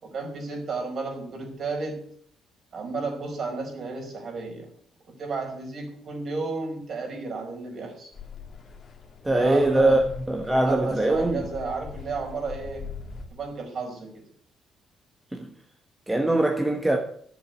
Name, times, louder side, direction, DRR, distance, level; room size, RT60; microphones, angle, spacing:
voice 1, 0.0-2.0 2.7-4.7 5.1-8.1 9.3-10.0 10.4-12.9 13.3-14.2, right 4 dB, 50° right, 5.0 m, -33 dB
sound 1, 8.1-13.3, left 5 dB, 35° left, 2.3 m, -42 dB
voice 2, 9.2-11.4 15.3-15.5 16.1-17.0, right 1 dB, 10° right, 1.2 m, -22 dB
10.5 x 7.2 x 9.6 m
cardioid pair, 130°, 0 cm